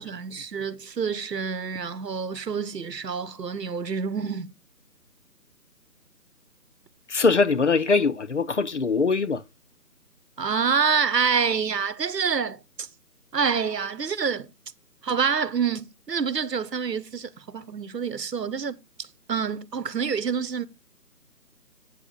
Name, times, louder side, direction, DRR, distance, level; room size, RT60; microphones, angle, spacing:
voice 1, 0.0-4.5 10.4-12.9 13.3-14.5 15.0-18.8 19.3-20.7, right 6 dB, 90° right, 1.1 m, -27 dB
voice 2, 7.1-9.4, left 4 dB, 50° left, 0.6 m, -22 dB
8.6 x 6.7 x 3.8 m
figure-of-eight pair, 160°, 48 cm